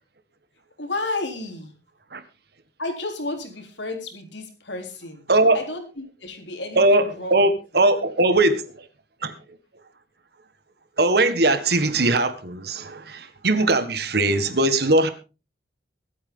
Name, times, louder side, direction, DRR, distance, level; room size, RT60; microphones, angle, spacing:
voice 1, 0.8-1.7 2.8-5.2 5.5-7.4, left 2 dB, 75° left, 3.8 m, -32 dB
voice 2, 6.8-8.6 9.2-9.3 11.0-15.1, right 2 dB, 60° right, 1.6 m, -20 dB
23.0 x 9.0 x 3.8 m
head